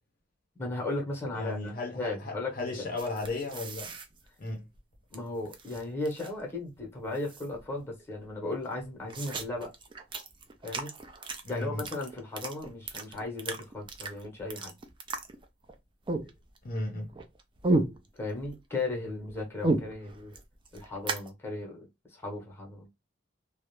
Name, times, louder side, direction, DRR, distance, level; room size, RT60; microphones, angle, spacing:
voice 1, 0.6-2.8 5.1-9.7 10.6-10.9 11.5-14.7 18.2-20.4 20.7-22.9, left 2 dB, 15° left, 0.8 m, -36 dB
voice 2, 1.3-3.9 4.4-4.7 11.4-11.9 16.6-17.2, left 2 dB, 45° left, 0.6 m, -35 dB
sound 1, 3.0-5.2 5.4-6.5 6.8-6.9 7.1-7.8 8.2-8.3 8.6-15.7 16.1-16.8 17.1-18.6 18.9-21.3, right 2 dB, 25° right, 0.4 m, -34 dB
2.3 x 2.0 x 2.9 m
head